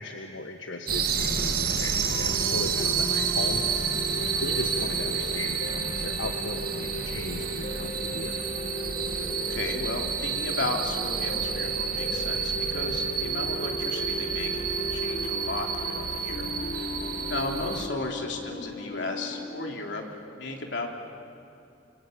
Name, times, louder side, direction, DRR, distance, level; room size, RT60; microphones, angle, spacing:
voice 1, 0.0-3.7 4.2-8.4 17.1-17.3, left 2 dB, 90° left, 3 dB, 1.5 m, -37 dB
sound 1, 0.9-17.9, right 6 dB, 55° right, 2.0 m, -30 dB
sound 2, 2.0-19.5, equal, 45° left, 2.2 m, -37 dB
voice 2, 9.5-16.9 17.3-20.9, left 2 dB, 75° left, 1 dB, 3.3 m, -34 dB
27.5 x 25.0 x 8.1 m, 2.7 s
head